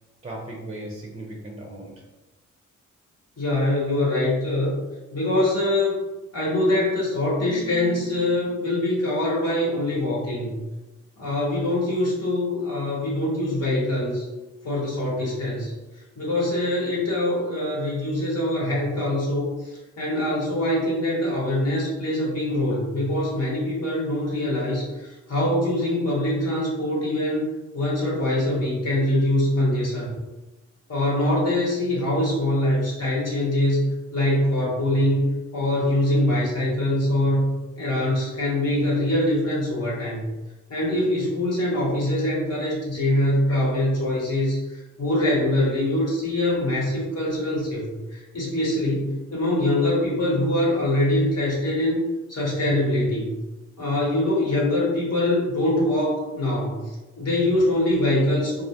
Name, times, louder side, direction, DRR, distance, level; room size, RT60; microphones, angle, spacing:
voice 1, 0.2-2.0 7.4-8.6 56.2-56.3, right 1 dB, 20° right, -2 dB, 0.5 m, -38 dB
voice 2, 3.4-4.7 5.1-6.0 6.3-10.6 11.2-14.3 14.6-15.7 16.2-27.5 27.7-30.1 30.9-40.3 40.7-52.0 52.3-53.3 53.8-58.6, left 1 dB, 55° left, -5 dB, 1.0 m, -23 dB
2.4 x 2.1 x 2.8 m, 1.1 s
cardioid pair, 55°, 31 cm